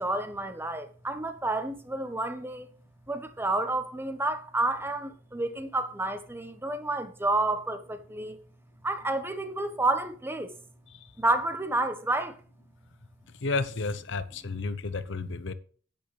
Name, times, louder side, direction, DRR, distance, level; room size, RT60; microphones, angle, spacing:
voice 1, 0.0-2.7 3.1-8.4 8.8-10.5 11.2-12.4, right 2 dB, 10° right, 1.2 m, -30 dB
voice 2, 13.4-15.5, left 3 dB, 60° left, 0.9 m, -32 dB
10.5 x 9.2 x 3.4 m
head